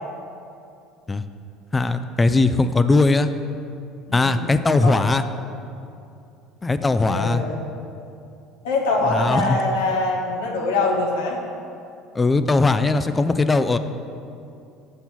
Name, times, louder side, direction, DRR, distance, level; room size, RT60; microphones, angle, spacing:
voice 1, 1.7-3.3 4.1-5.3 6.6-7.4 9.1-9.6 12.1-13.8, left 3 dB, 20° left, 11 dB, 0.4 m, -19 dB
voice 2, 4.1-5.0 7.1-7.7 8.6-11.4, left 2 dB, 85° left, -1 dB, 0.9 m, -24 dB
6.7 x 4.4 x 5.9 m, 2.6 s
hypercardioid pair, 75°, 0 cm